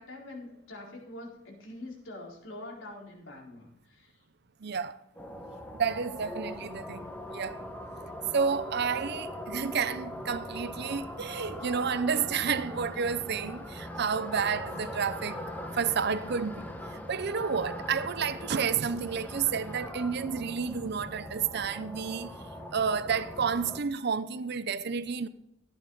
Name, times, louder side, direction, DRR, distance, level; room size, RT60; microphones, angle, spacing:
voice 1, 0.0-4.1, left 1 dB, 75° left, 4.2 m, -45 dB
voice 2, 4.6-5.0 5.7-7.6 8.3-15.4 15.7-25.3, right 6 dB, 60° right, 0.6 m, -31 dB
sound 1, 5.2-23.8, left 1 dB, 10° left, 1.3 m, -41 dB
15.5 x 9.4 x 4.0 m
head